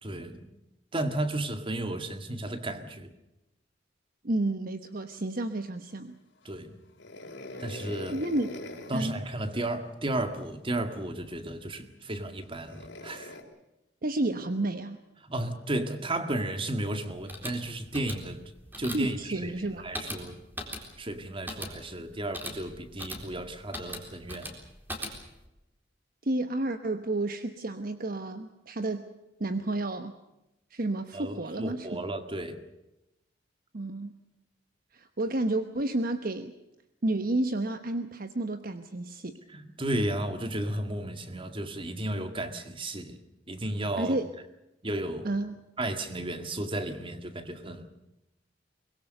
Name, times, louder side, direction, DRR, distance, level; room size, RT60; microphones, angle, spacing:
voice 1, 0.0-0.5 0.9-3.1 6.5-6.7 7.6-8.2 8.9-13.3 15.3-18.4 18.8-19.2 19.4-19.5 19.8-20.4 21.0-24.6 31.1-32.6 39.5-43.2 43.5-44.2 44.8-45.3 45.8-47.9, right 1 dB, 30° right, 8 dB, 2.0 m, -33 dB
voice 2, 4.2-6.1 8.1-8.5 8.9-9.2 14.0-15.0 18.9-19.9 26.2-29.1 29.4-30.2 30.7-32.0 33.7-34.1 34.9-36.5 37.0-39.4 44.0-44.3 45.2-45.5, right 2 dB, 50° right, 9 dB, 1.1 m, -31 dB
sound 1, 7.0-9.1 10.9-11.0 12.6-13.4, left 2 dB, 75° left, 3.9 m, -42 dB
sound 2, 17.1-25.5, equal, 10° right, 3.9 m, -41 dB
23.5 x 21.5 x 6.7 m, 0.92 s
head